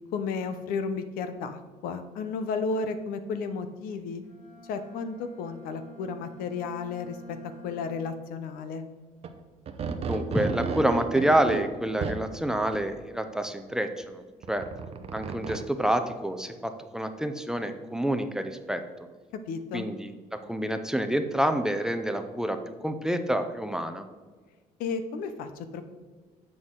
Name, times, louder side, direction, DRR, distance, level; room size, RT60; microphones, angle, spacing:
voice 1, 0.1-4.2 4.7-7.4 7.6-8.8 19.5-19.9 24.8-25.8, left 5 dB, 85° left, 9 dB, 0.7 m, -33 dB
Bowed string instrument, 4.2-8.3, right 1 dB, 55° left, 1.4 m, -48 dB
sound 1, 9.2-9.3 9.7-12.2 12.6-12.8 14.4-15.6, right 5 dB, 45° right, 0.7 m, -33 dB
voice 2, 10.1-14.2 14.5-14.7 15.1-18.8 19.7-22.6 22.8-24.0, right 1 dB, 5° right, 7 dB, 0.5 m, -28 dB
7.8 x 6.2 x 3.7 m, 1.4 s
cardioid pair, 125°, 14 cm